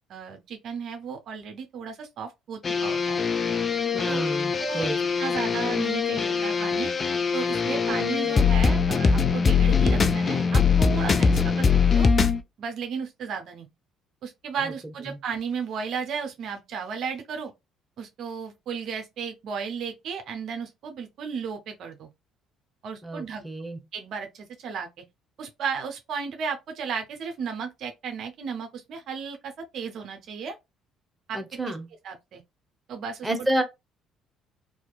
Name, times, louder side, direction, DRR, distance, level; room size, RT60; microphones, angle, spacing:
voice 1, 0.1-3.2 4.1-4.2 4.6-4.9 5.2-6.9 7.3-12.1 12.6-13.7 14.2-17.5 18.0-22.1 22.8-23.4 23.9-24.9 25.4-30.5 31.3-31.7 32.0-32.4 32.9-33.5, right 6 dB, 60° right, 0.5 m, -34 dB
sound 1, 2.6-12.4, left 5 dB, 40° left, 0.3 m, -22 dB
voice 2, 3.9-5.0 7.9-8.3 23.0-23.8 31.3-31.9 33.2-33.6, right 1 dB, 15° right, 0.8 m, -30 dB
2.7 x 2.4 x 2.3 m
hypercardioid pair, 55°, 0 cm